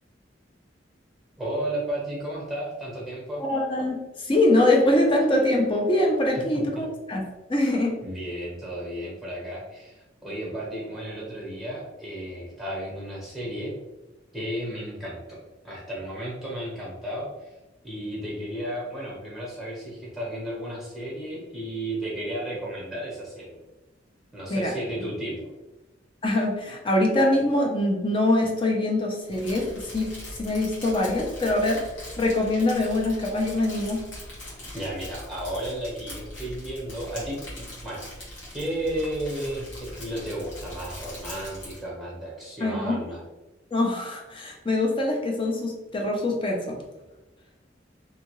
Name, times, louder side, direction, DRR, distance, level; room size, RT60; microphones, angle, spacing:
voice 1, 1.4-3.4 6.5-6.8 8.0-13.7 14.3-17.5 17.8-23.6 24.3-25.5 34.7-38.1 38.5-43.2, right 1 dB, ahead, -5 dB, 0.9 m, -33 dB
voice 2, 3.4-7.2 7.5-8.0 24.5-24.7 26.2-30.1 30.4-31.9 32.2-34.0 42.6-43.1 43.7-46.8, left 1 dB, 25° left, 0 dB, 0.5 m, -23 dB
Crumpling crinkling, 29.3-41.9, left 1 dB, 85° left, 1.1 m, -41 dB
2.7 x 2.4 x 2.9 m, 1.1 s
head